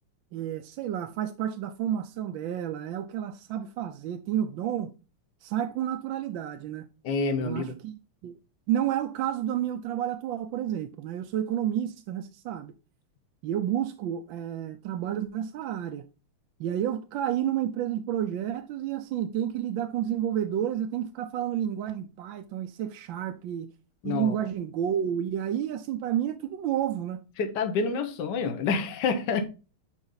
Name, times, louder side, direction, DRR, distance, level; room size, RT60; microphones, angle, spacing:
voice 1, 0.3-4.9 5.4-6.9 7.4-8.4 8.7-12.7 13.4-16.0 16.6-23.7 24.0-27.2, right 10 dB, 70° right, 1.3 m, -30 dB
voice 2, 7.0-7.8 24.0-24.4 27.4-29.4, left 4 dB, 55° left, 1.6 m, -28 dB
10.5 x 3.6 x 4.0 m
omnidirectional pair, 2.4 m